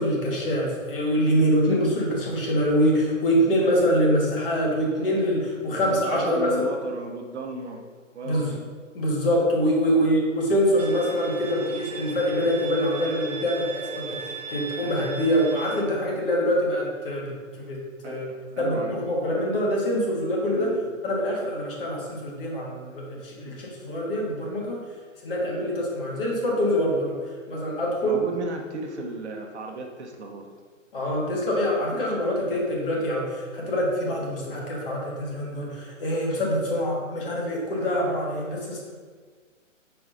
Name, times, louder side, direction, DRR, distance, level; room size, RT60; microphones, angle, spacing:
voice 1, 0.0-6.5 8.2-8.5 8.9-18.2 18.6-20.7 21.0-24.8 25.2-27.2 27.5-28.2 30.9-38.8, equal, 45° left, -2 dB, 1.6 m, -25 dB
voice 2, 5.7-7.8 8.1-8.6 9.8-10.1 18.0-19.0 20.5-20.8 23.5-23.6 28.0-30.5, right 2 dB, 55° right, 2 dB, 0.9 m, -35 dB
Bowed string instrument, 10.8-15.8, right 4 dB, 80° right, 1.1 m, -37 dB
8.1 x 4.8 x 2.6 m, 1.5 s
hypercardioid pair, 165°, 39 cm